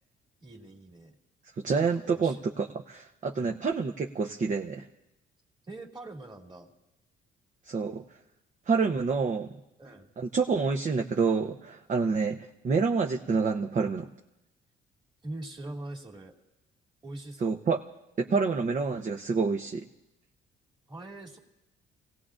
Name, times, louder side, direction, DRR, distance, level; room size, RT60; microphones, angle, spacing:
voice 1, 0.4-1.1 1.7-2.5 3.3-3.6 5.7-6.7 9.8-10.1 15.2-16.3 17.0-17.6 20.9-21.4, right 2 dB, 25° right, 1 dB, 2.4 m, -43 dB
voice 2, 1.6-4.9 7.7-8.0 8.7-9.5 10.2-14.1 17.4-17.8 18.2-19.8, right 4 dB, 40° right, 2 dB, 0.8 m, -28 dB
29.5 x 17.5 x 2.5 m, 0.94 s
cardioid pair, 90°, 20 cm